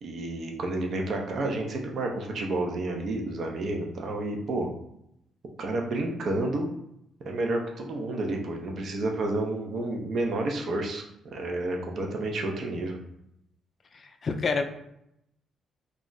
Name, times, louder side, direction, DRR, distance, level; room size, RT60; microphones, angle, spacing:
voice 1, 0.0-4.7 5.6-6.7 7.2-11.0 11.3-13.0, right 2 dB, 60° right, 1 dB, 0.6 m, -30 dB
voice 2, 13.9-14.7, left 4 dB, 45° left, 6 dB, 0.3 m, -28 dB
2.4 x 2.0 x 3.9 m, 0.79 s
cardioid pair, 90°, 0 cm